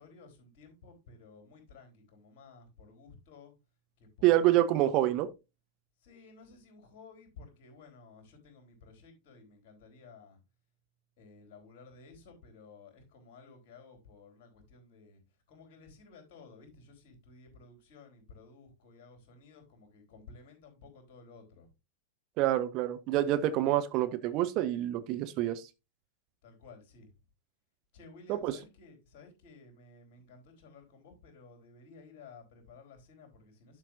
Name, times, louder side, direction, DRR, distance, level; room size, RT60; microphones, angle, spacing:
voice 1, 0.0-3.5 4.0-4.5 6.0-10.4 11.2-15.2 15.5-21.6 26.4-27.1 27.9-33.8, left 4 dB, 45° left, 3.9 m, -55 dB
voice 2, 4.2-5.3 22.4-25.7 28.3-28.6, right 13 dB, 40° right, 0.8 m, -27 dB
11.5 x 5.8 x 2.6 m
figure-of-eight pair, 90°, 0 cm